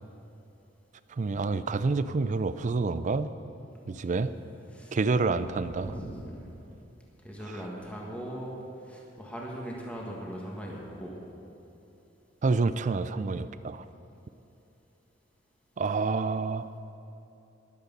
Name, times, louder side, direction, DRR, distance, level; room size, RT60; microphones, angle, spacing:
voice 1, 1.2-3.3 3.9-4.3 4.9-5.9 12.4-13.9 15.8-16.7, right 3 dB, 40° right, 13 dB, 0.4 m, -28 dB
voice 2, 4.7-5.4 5.8-6.5 7.2-11.2, equal, 5° left, -3 dB, 1.7 m, -40 dB
13.0 x 11.0 x 5.4 m, 2.9 s
head